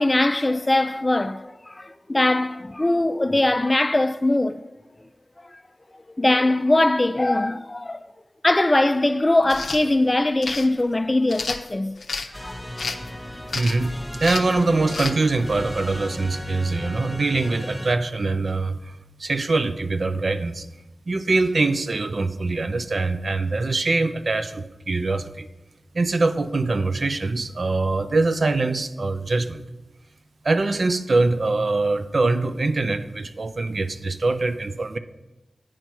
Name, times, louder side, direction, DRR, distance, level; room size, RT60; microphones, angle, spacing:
voice 1, 0.0-4.6 6.2-8.0 8.4-11.9 12.4-12.5, left 2 dB, 25° left, 0.4 m, -21 dB
sound 1, 9.4-9.8 10.4-10.7 11.3-12.3 12.8-13.1 13.5-13.9 14.2-14.5 14.9-15.1, left 4 dB, 75° left, 0.5 m, -30 dB
sound 2, 12.3-17.9, equal, ahead, 0.8 m, -36 dB
voice 2, 13.5-18.8 19.2-20.7 21.1-25.5 25.9-29.6 30.4-35.0, right 3 dB, 60° right, 0.5 m, -23 dB
9.0 x 4.6 x 5.6 m
wide cardioid pair, 70°, 0 cm